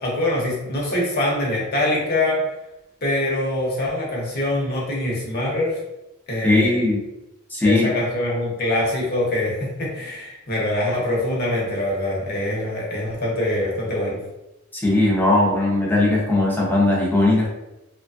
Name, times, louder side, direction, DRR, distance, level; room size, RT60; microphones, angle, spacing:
voice 1, 0.0-2.4 3.0-5.8 6.3-6.8 7.6-14.2, left 1 dB, 45° left, -4 dB, 0.9 m, -24 dB
voice 2, 6.4-7.0 7.5-7.9 14.7-17.5, left 2 dB, 10° left, -4 dB, 0.7 m, -18 dB
3.0 x 2.2 x 2.6 m, 0.96 s
head